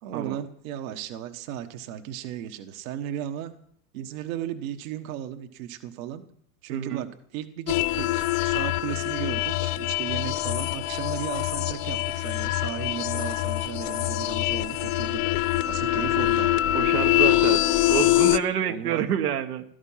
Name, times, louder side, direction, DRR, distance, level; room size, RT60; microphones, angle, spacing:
voice 1, 0.0-3.5 3.9-6.2 6.6-15.4 15.6-16.5 18.7-19.0, right 10 dB, 60° right, 8 dB, 1.4 m, -35 dB
voice 2, 6.7-7.0 16.7-17.6 17.9-19.6, right 9 dB, 80° right, 6 dB, 1.5 m, -27 dB
sound 1, 7.7-18.4, left 15 dB, 45° left, 0.8 m, -24 dB
16.5 x 12.5 x 5.7 m, 0.66 s
hypercardioid pair, 120°, 45 cm